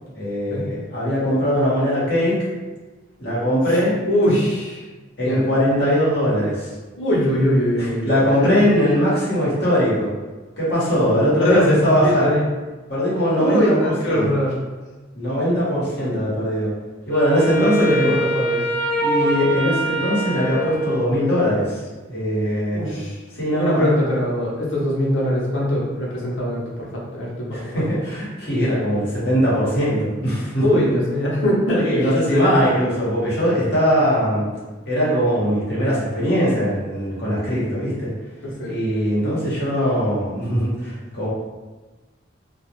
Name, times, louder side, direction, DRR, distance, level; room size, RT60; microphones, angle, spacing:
voice 1, 0.1-2.4 3.2-4.0 5.2-6.7 7.8-10.1 10.6-12.3 12.9-13.7 14.1-14.2 15.1-16.7 17.1-18.1 19.0-21.8 22.1-23.1 23.4-23.9 27.5-30.6 31.8-34.5 34.9-38.1 38.6-41.3, equal, 55° left, -8 dB, 1.0 m, -20 dB
voice 2, 4.1-4.9 5.2-5.4 7.0-8.2 11.0-12.4 13.4-14.5 17.6-18.6 22.7-23.1 23.6-27.9 30.6-32.9 33.2-33.4 38.4-38.8, equal, 90° left, -5 dB, 0.7 m, -22 dB
Wind instrument woodwind instrument, 17.1-21.5, equal, 10° left, 0.8 m, -24 dB
2.3 x 2.0 x 3.0 m, 1.2 s
head